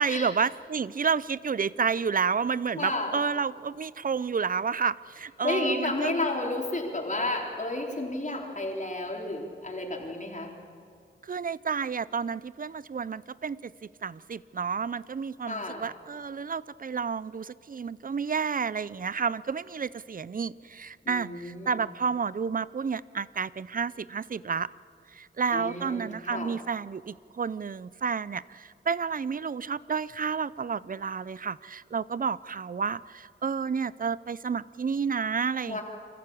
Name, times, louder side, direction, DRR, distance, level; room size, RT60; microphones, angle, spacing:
voice 1, 0.0-6.1 11.2-24.7 25.1-35.8, right 6 dB, 45° right, 19 dB, 0.5 m, -30 dB
voice 2, 2.7-3.1 5.4-10.5 15.5-15.8 21.1-21.7 25.5-26.5 35.7-35.8, left 2 dB, 40° left, 0 dB, 3.9 m, -31 dB
26.0 x 14.5 x 8.6 m, 2.2 s
cardioid pair, 60°, 20 cm